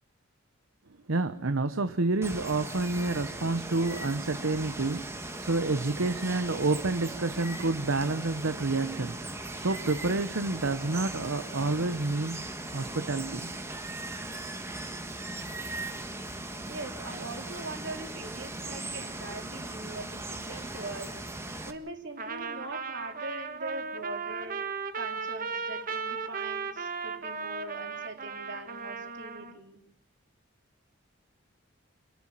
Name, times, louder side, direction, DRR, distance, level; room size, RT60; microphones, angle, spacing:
voice 1, 1.1-13.5, right 3 dB, 75° right, 10 dB, 1.0 m, -29 dB
Water, 2.2-21.7, right 2 dB, 15° right, 1.6 m, -39 dB
voice 2, 16.7-21.2 21.7-24.6 24.9-29.8, right 2 dB, 60° right, 3 dB, 3.9 m, -42 dB
Trumpet, 22.2-29.5, right 5 dB, 45° right, 1.6 m, -36 dB
30.0 x 11.5 x 8.8 m, 0.74 s
head